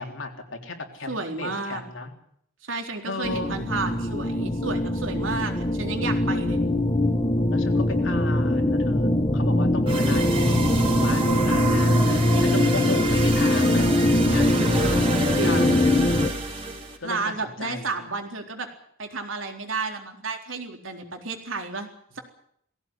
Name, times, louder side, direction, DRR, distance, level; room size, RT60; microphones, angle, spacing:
voice 1, 0.0-2.1 3.0-3.5 7.5-13.9 14.3-15.7 17.0-18.1, left 2 dB, 65° left, 4 dB, 3.6 m, -35 dB
voice 2, 1.1-1.8 2.6-6.6 14.3-15.1 15.3-15.8 16.8-18.7 19.0-21.9 22.1-22.2, right 3 dB, 70° right, 4 dB, 3.9 m, -32 dB
sound 1, 3.2-16.3, left 1 dB, 25° left, 1.2 m, -22 dB
sound 2, 9.9-17.0, right 2 dB, 25° right, 4.4 m, -28 dB
20.0 x 16.5 x 10.0 m, 0.70 s
head